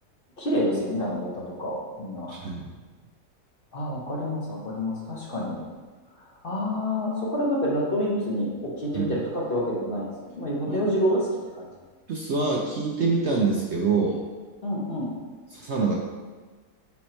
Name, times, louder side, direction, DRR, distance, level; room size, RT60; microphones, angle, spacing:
voice 1, 0.4-2.3 3.7-5.6 6.2-10.1 10.3-11.3 11.6-11.7 14.6-15.1, equal, 40° left, -4 dB, 1.1 m, -28 dB
voice 2, 2.3-2.7 8.9-9.1 10.7-10.8 11.1-11.2 12.1-14.2 15.5-16.0, right 4 dB, 60° right, -1 dB, 0.8 m, -25 dB
7.6 x 3.0 x 4.3 m, 1.4 s
omnidirectional pair, 1.6 m